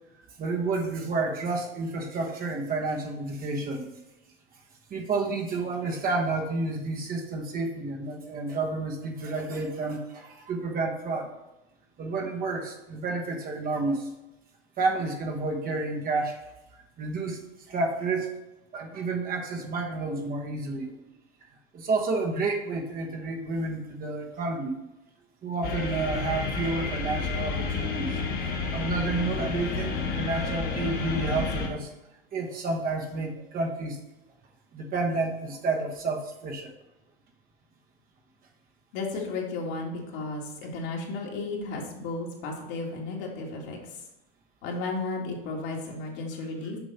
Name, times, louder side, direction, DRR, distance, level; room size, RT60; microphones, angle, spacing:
voice 1, 0.4-3.9 4.9-11.3 12.0-14.1 14.8-16.4 17.0-18.3 18.7-21.1 21.7-24.8 25.4-28.2 28.7-31.9 32.3-34.0 34.7-36.7, right 3 dB, 30° right, 2 dB, 1.1 m, -30 dB
sound 1, 25.6-31.7, left 3 dB, 30° left, 1.3 m, -30 dB
voice 2, 38.9-44.0 44.6-46.8, left 3 dB, 60° left, -2 dB, 2.1 m, -34 dB
7.0 x 5.3 x 4.2 m, 0.96 s
hypercardioid pair, 115°, 30 cm